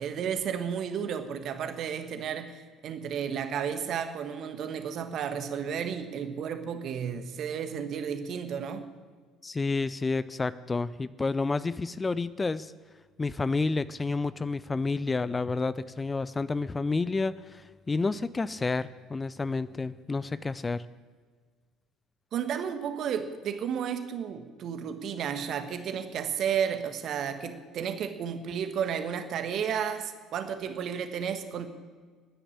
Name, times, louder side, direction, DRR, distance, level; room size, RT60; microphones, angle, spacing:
voice 1, 0.0-8.8 22.3-31.7, right 7 dB, 50° right, 8 dB, 1.5 m, -32 dB
voice 2, 9.4-12.7 13.2-20.9, left 3 dB, 20° left, 16 dB, 0.5 m, -30 dB
13.5 x 10.0 x 8.6 m, 1.6 s
figure-of-eight pair, 60°, 0 cm